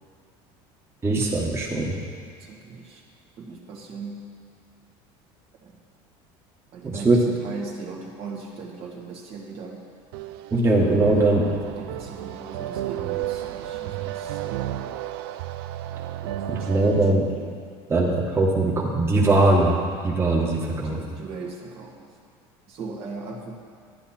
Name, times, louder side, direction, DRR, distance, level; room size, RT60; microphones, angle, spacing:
voice 1, 1.0-2.0 6.8-7.2 10.5-11.5 16.5-17.3 17.9-19.8 20.0-21.0, right 2 dB, 20° right, -3 dB, 1.6 m, -21 dB
voice 2, 2.4-3.0 3.4-4.3 5.6-5.7 6.7-9.8 11.1-14.6 16.2-17.6 20.7-22.1 22.7-23.5, right 4 dB, 50° right, -1 dB, 1.8 m, -39 dB
sound 1, 10.1-17.1, right 12 dB, 90° right, 0.5 m, -32 dB
12.0 x 10.5 x 4.4 m, 2.1 s
supercardioid pair, 120°, 12 cm